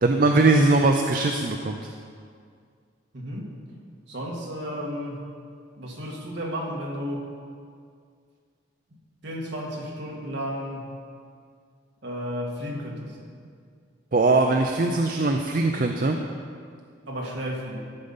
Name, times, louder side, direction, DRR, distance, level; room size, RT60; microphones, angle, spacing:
voice 1, 0.0-1.9 14.1-16.2, right 2 dB, 45° right, 4 dB, 0.5 m, -21 dB
voice 2, 3.1-3.6 4.1-5.3 5.8-7.3 9.2-10.9 12.0-13.2 17.1-17.8, equal, 60° right, -1 dB, 1.8 m, -33 dB
13.0 x 6.6 x 5.5 m, 2.2 s
head